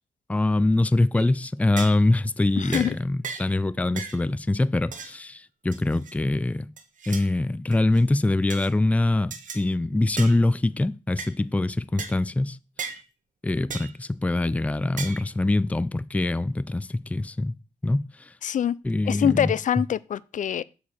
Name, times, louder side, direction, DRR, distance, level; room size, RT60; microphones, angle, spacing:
voice 1, 0.3-6.7 7.1-12.6 13.4-17.5 17.8-18.3 18.8-19.5, left 2 dB, 10° left, 0.4 m, -24 dB
sound 1, 1.2-1.3 1.8-2.1 2.7-2.9 3.2-3.5 4.0-4.2 4.9-5.2 5.7-6.1 6.8-7.3 7.7-8.0 8.5-8.7 9.3-9.6 10.2-10.4 11.2-11.3 12.0-12.2 12.8-13.0 13.7-14.0 15.0-15.3, right 5 dB, 75° right, 1.4 m, -36 dB
voice 2, 2.6-2.9 18.4-18.8 19.1-20.6, left 9 dB, 75° left, 0.4 m, -24 dB
8.1 x 4.9 x 7.3 m
wide cardioid pair, 105°, 13 cm